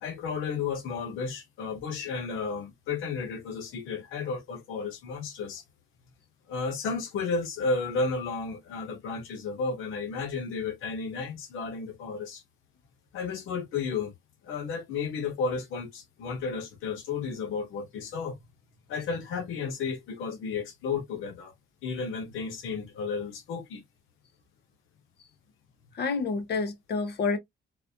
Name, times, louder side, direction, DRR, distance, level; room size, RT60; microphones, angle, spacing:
voice 1, 0.0-5.6 6.5-12.4 13.1-14.1 14.4-18.4 18.9-21.5 21.8-23.8, left 4 dB, 90° left, 1.0 m, -33 dB
voice 2, 25.9-27.4, left 4 dB, 55° left, 1.1 m, -28 dB
4.1 x 2.4 x 2.7 m
cardioid pair, 90°, 20 cm